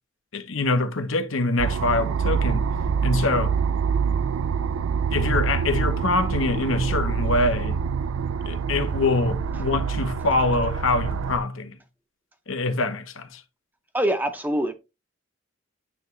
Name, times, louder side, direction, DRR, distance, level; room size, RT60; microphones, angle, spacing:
voice 1, 0.3-2.7 3.0-3.5 5.1-7.8 8.4-11.8 12.5-13.4, left 2 dB, 70° left, 0.9 m, -24 dB
sound 1, 1.6-11.4, right 6 dB, 75° right, 0.3 m, -26 dB
voice 2, 13.9-14.7, right 1 dB, 10° right, 0.6 m, -24 dB
8.8 x 3.6 x 3.1 m
head